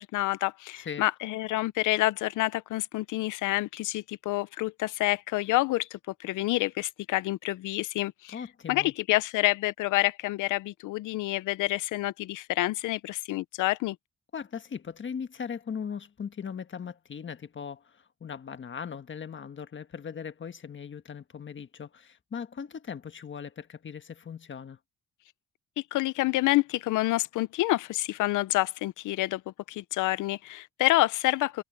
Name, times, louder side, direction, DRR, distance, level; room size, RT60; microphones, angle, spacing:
voice 1, 0.0-8.4 8.7-14.0 25.9-29.4 29.7-31.6, left 17 dB, 85° left, 0.6 m, -28 dB
voice 2, 0.8-1.1 8.3-8.9 14.3-24.8, left 7 dB, 40° left, 1.5 m, -39 dB
cardioid pair, 90°, 30 cm